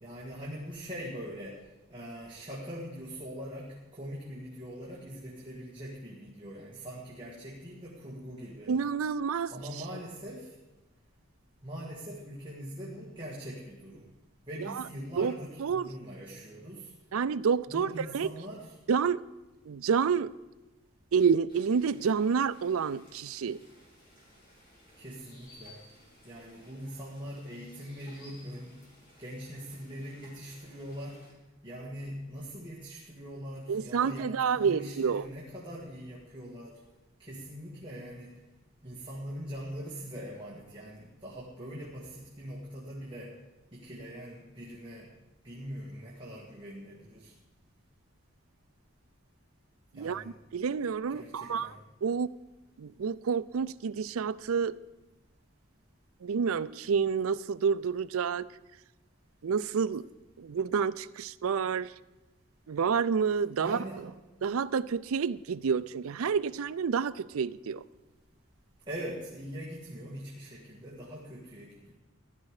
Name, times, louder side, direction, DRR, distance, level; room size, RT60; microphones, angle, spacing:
voice 1, 0.0-1.6 1.9-8.7 9.5-10.5 11.6-14.1 14.5-16.9 17.7-18.8 25.0-25.8 26.2-28.8 29.2-31.2 31.6-36.8 37.2-38.4 38.8-43.4 43.7-45.1 45.4-47.3 49.9-50.3 51.1-51.8 63.6-64.0 68.9-71.9, equal, 20° right, 1.9 m, -42 dB
voice 2, 8.7-9.5 14.6-14.8 15.2-15.3 15.6-15.9 17.1-18.3 18.9-19.2 19.7-20.3 21.1-23.6 33.7-35.2 49.9-50.2 50.5-51.7 52.0-52.3 52.8-54.8 56.2-58.5 59.4-60.1 60.4-61.9 62.7-63.8 64.4-67.8, right 6 dB, 75° right, 0.4 m, -29 dB
sound 1, 21.5-31.3, left 1 dB, 40° left, 3.8 m, -58 dB
15.0 x 11.5 x 4.9 m
head